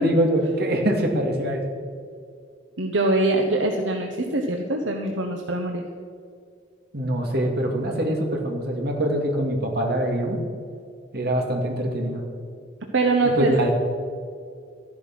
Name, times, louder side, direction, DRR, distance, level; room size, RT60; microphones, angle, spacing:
voice 1, 0.0-1.6 6.9-10.4 11.1-12.2 13.4-13.7, right 1 dB, 55° right, 1 dB, 2.4 m, -24 dB
voice 2, 2.8-5.8 12.9-13.5, right 2 dB, 70° right, 2 dB, 1.1 m, -23 dB
13.5 x 11.0 x 6.1 m, 2.3 s
head